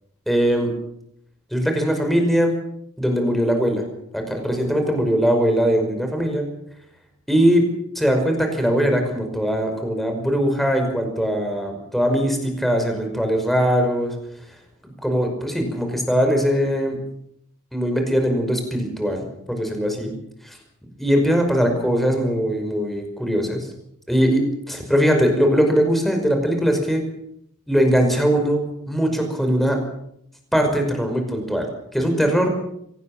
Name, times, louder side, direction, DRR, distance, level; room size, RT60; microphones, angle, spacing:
voice 1, 0.3-0.7 1.5-2.5 3.0-3.8 4.1-6.5 7.3-7.6 8.0-14.1 14.8-17.0 17.7-20.2 20.4-20.6 21.0-23.7 24.1-27.0 27.7-29.8 30.5-32.5, equal, ahead, 4 dB, 5.4 m, -21 dB
24.5 x 18.5 x 7.3 m, 0.74 s
head